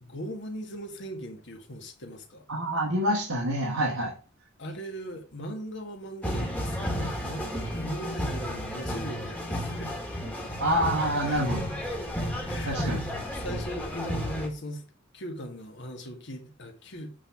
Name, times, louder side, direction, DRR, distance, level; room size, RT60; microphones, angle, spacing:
voice 1, 0.0-2.5 4.6-10.0 11.2-11.5 12.4-14.9 15.1-17.1, equal, 55° left, 1.7 m, -39 dB
voice 2, 2.5-4.1 10.6-11.7 12.7-13.0, equal, 80° right, 1.7 m, -27 dB
sound 1, 6.2-14.5, equal, 5° left, 1.6 m, -32 dB
8.5 x 3.9 x 5.7 m
head